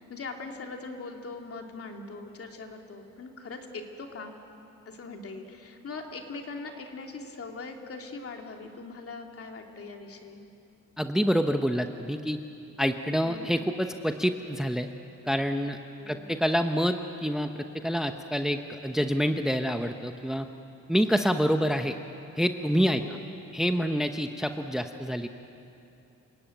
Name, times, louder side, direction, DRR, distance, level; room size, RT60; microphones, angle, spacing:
voice 1, 0.0-4.3 4.9-10.4 13.2-13.5 16.0-16.3 23.0-23.3, left 3 dB, 50° left, 3 dB, 2.9 m, -41 dB
voice 2, 11.0-12.4 12.8-14.9 15.3-15.8 16.1-20.5 20.9-22.0 22.4-23.2 23.5-25.3, equal, ahead, 6 dB, 0.9 m, -27 dB
28.0 x 17.0 x 9.2 m, 2.7 s
cardioid pair, 90°, 30 cm